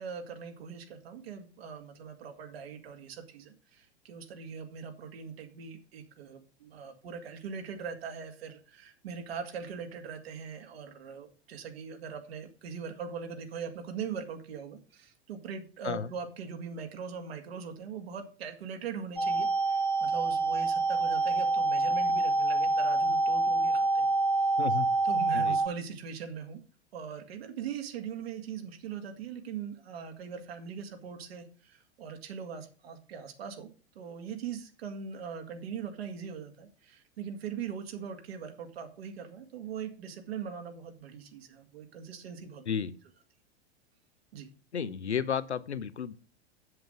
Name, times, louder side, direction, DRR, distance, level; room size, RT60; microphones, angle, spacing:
voice 1, 0.0-24.1 25.0-26.6 26.9-33.7 34.0-42.7 44.3-44.5, right 6 dB, 65° right, 5 dB, 2.2 m, -41 dB
sound 1, 19.2-25.7, right 2 dB, 5° left, 1.3 m, -26 dB
voice 2, 24.6-24.9 25.3-25.6 42.7-42.9 44.7-46.1, left 7 dB, 80° left, 16 dB, 0.9 m, -32 dB
7.9 x 7.6 x 5.0 m, 0.37 s
figure-of-eight pair, 95°, 33 cm